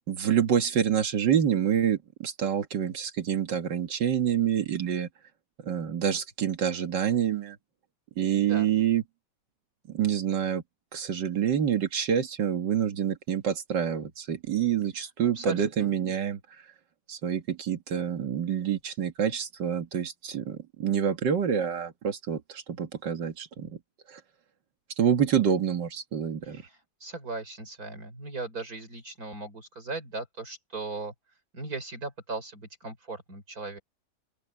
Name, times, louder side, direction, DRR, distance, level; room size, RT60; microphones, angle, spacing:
voice 1, 0.1-5.1 5.6-7.6 8.2-9.0 9.9-10.6 10.9-16.4 17.1-23.8 24.1-24.2 25.0-26.6, right 9 dB, 90° right, 2.2 m, -27 dB
voice 2, 8.3-8.7 15.3-15.9 26.4-31.1 31.5-33.8, right 3 dB, 55° right, 4.8 m, -38 dB
open air
omnidirectional pair, 1.8 m